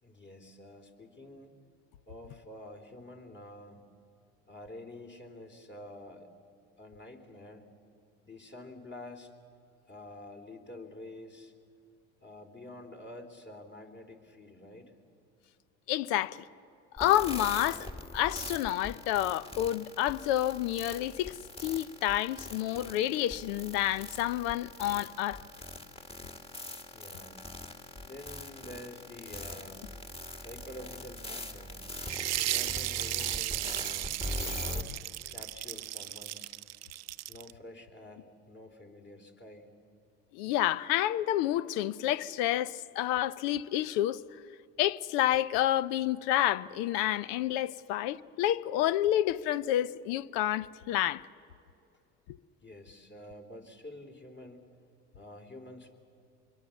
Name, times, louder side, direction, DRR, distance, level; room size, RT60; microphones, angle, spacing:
voice 1, 0.0-1.5 2.1-3.8 4.5-6.3 6.8-7.7 8.2-9.3 9.9-11.5 12.2-14.9 26.9-27.5 28.0-29.8 30.3-31.8 32.4-34.9 35.3-36.6 37.3-39.8 52.6-54.7 55.1-56.0, left 1 dB, 35° left, 3.6 m, -48 dB
voice 2, 15.9-16.5 17.0-17.9 18.1-25.4 40.3-44.2 44.8-51.2, left 13 dB, 80° left, 0.7 m, -29 dB
sound 1, 17.0-34.8, left 1 dB, 20° left, 2.0 m, -42 dB
sound 2, 32.0-37.5, right 16 dB, 55° right, 0.6 m, -35 dB
25.5 x 22.5 x 7.1 m
supercardioid pair, 85°, 32 cm